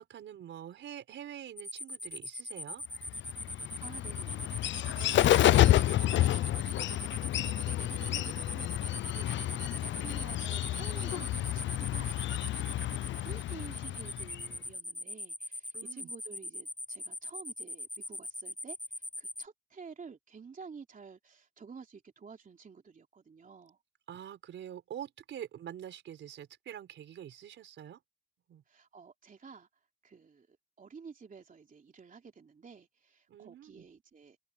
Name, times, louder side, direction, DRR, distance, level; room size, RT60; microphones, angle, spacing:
voice 1, 0.0-2.8 9.1-9.3 15.7-16.1 24.1-28.0 28.5-28.6 33.3-33.8, right 10 dB, 80° right, 4.9 m, -45 dB
sound 1, 1.6-19.4, left 1 dB, 40° left, 4.7 m, -41 dB
Bird, 3.1-14.6, left 13 dB, 75° left, 0.5 m, -29 dB
voice 2, 3.5-6.6 7.4-23.8 28.7-29.7 30.0-34.4, right 5 dB, 45° right, 3.2 m, -51 dB
open air
cardioid pair, 80°, 19 cm